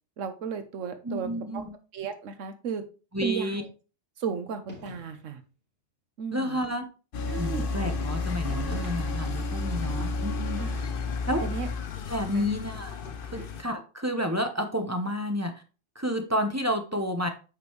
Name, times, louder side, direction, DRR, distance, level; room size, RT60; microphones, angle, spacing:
voice 1, 0.2-1.6 1.9-2.8 3.2-3.7 4.2-5.4 6.2-6.6 7.3-7.7 10.6-10.9 11.4-11.7 12.3-12.5 13.3-13.5, right 6 dB, 80° right, 8 dB, 1.2 m, -34 dB
voice 2, 1.0-1.7 3.1-3.6 6.3-6.8 7.4-10.6 11.3-11.5 12.1-12.9 13.2-15.6 15.9-17.3, equal, 15° right, 5 dB, 0.9 m, -30 dB
sound 1, 4.7-5.4 8.5-9.5, equal, 35° right, 3.1 m, -48 dB
sound 2, 7.1-13.6, left 3 dB, 50° left, 0.9 m, -31 dB
8.8 x 5.1 x 3.2 m, 0.34 s
omnidirectional pair, 1.3 m